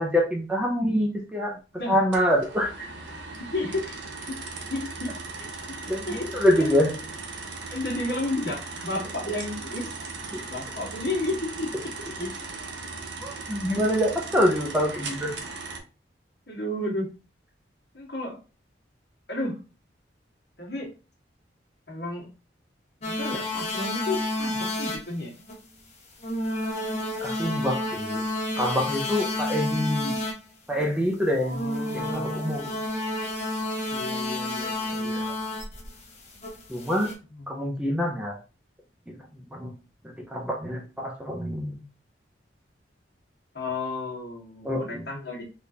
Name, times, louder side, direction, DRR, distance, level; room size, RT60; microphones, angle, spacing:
voice 1, 0.0-1.6 1.9-2.9 5.9-6.9 10.3-10.4 12.2-12.3 13.2-15.3 27.2-28.2 28.6-30.2 30.7-32.7 35.0-35.3 36.7-37.1 37.5-38.4 39.1-39.7 40.0-41.8 44.6-45.1, equal, 5° right, 0 dB, 0.5 m, -26 dB
sound 1, 2.1-15.8, right 3 dB, 75° right, 0.7 m, -38 dB
voice 2, 3.4-4.0 4.3-4.4 4.7-5.1 5.4-6.7 7.7-9.9 10.5-11.7 12.0-12.3 16.5-17.1 17.9-18.4 19.3-19.6 20.6-20.9 21.9-22.3 23.0-25.3 31.4-32.9 33.9-35.3 37.3-37.7 43.5-45.4, left 2 dB, 60° left, -1 dB, 1.3 m, -32 dB
sound 2, 23.0-25.1 25.4-25.5 26.2-30.3 30.7-30.9 31.5-37.1, left 1 dB, 35° left, 0.8 m, -30 dB
3.5 x 2.5 x 2.7 m, 0.32 s
head